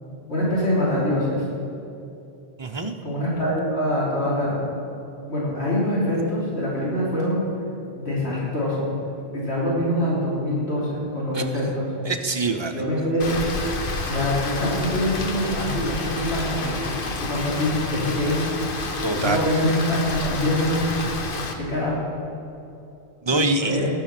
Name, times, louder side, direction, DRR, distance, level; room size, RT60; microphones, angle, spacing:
voice 1, 0.3-1.4 3.0-4.6 5.3-7.5 7.9-8.9 9.3-11.9 12.7-13.4 14.1-16.9 17.2-18.5 19.1-20.9 21.6-22.1 23.3-23.9, left 1 dB, 85° left, -7 dB, 3.5 m, -24 dB
voice 2, 2.6-3.0 11.3-11.4 12.0-12.7 19.0-19.4 23.2-23.8, right 3 dB, 30° right, 5 dB, 0.8 m, -25 dB
Rain, 13.2-21.5, left 3 dB, 60° left, 1.2 m, -29 dB
19.5 x 6.8 x 6.0 m, 2.8 s
omnidirectional pair, 1.1 m